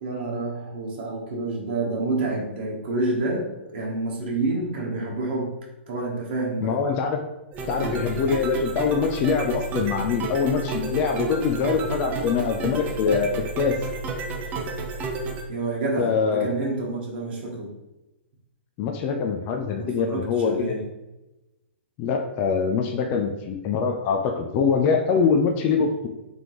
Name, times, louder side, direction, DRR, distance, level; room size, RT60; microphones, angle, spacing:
voice 1, 0.0-5.5 5.9-6.8 15.5-17.7 19.8-20.8, right 2 dB, 55° right, -2 dB, 1.1 m, -28 dB
voice 2, 6.6-7.3 7.7-13.8 16.0-16.5 18.8-20.8 22.0-26.1, left 5 dB, 35° left, 3 dB, 0.4 m, -24 dB
sound 1, 7.5-15.4, right 3 dB, 25° right, 0.6 m, -31 dB
3.7 x 3.4 x 3.0 m, 0.97 s
hypercardioid pair, 120°, 7 cm